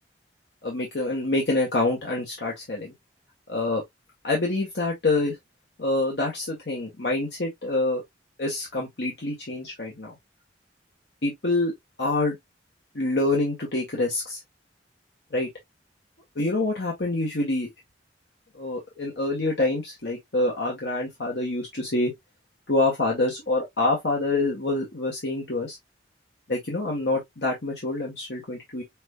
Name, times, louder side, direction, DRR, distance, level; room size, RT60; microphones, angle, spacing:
voice 1, 0.6-2.9 3.5-3.8 4.2-5.3 5.8-8.0 8.4-10.2 11.2-11.7 12.0-12.4 12.9-14.4 15.3-15.5 16.3-17.7 18.5-22.1 22.7-25.8 26.5-28.8, left 2 dB, 65° left, 1.6 m, -26 dB
5.2 x 3.5 x 2.4 m
head